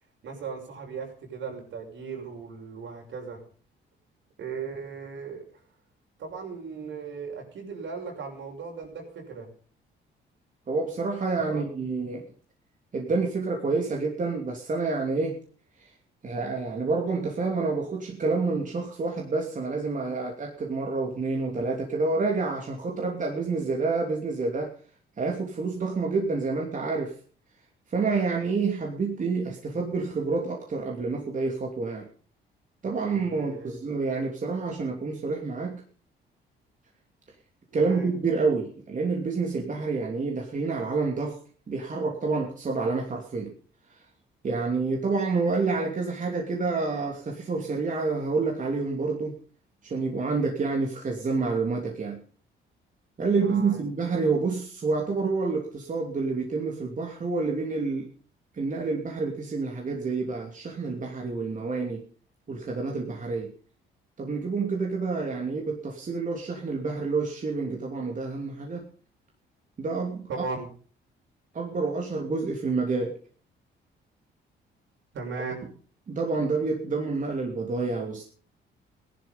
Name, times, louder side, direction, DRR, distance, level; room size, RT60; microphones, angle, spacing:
voice 1, 0.2-3.4 4.4-5.4 6.2-9.5 11.5-11.6 33.1-33.9 37.7-38.1 53.3-53.8 70.3-70.7 75.1-75.6, right 5 dB, 75° right, 1 dB, 6.6 m, -37 dB
voice 2, 10.7-12.2 12.9-15.4 16.2-24.7 25.2-27.1 27.9-32.1 32.8-35.8 37.7-41.4 41.7-43.5 44.4-49.4 49.8-52.2 53.2-58.1 58.5-62.0 62.5-63.5 64.2-68.9 69.8-70.4 71.5-73.2 76.1-78.2, right 4 dB, 40° right, 0 dB, 2.9 m, -28 dB
17.0 x 11.5 x 5.4 m, 0.42 s
cardioid pair, 90°, 20 cm